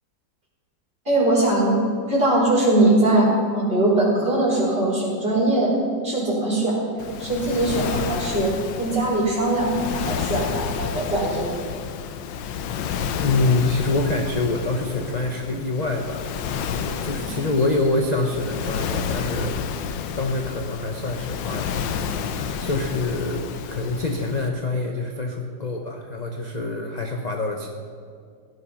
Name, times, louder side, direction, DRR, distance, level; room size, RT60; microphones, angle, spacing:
voice 1, 1.0-1.8 2.1-3.3 3.5-5.7 6.0-11.4, right 2 dB, 30° right, -5 dB, 4.5 m, -21 dB
Waves surf, 7.0-24.5, left 7 dB, 80° left, 1.5 m, -30 dB
voice 2, 13.1-16.3 16.7-19.6 20.2-21.7 22.6-23.4 23.7-27.7, left 2 dB, 30° left, 2 dB, 0.8 m, -25 dB
16.0 x 11.5 x 5.8 m, 2.2 s
omnidirectional pair, 2.0 m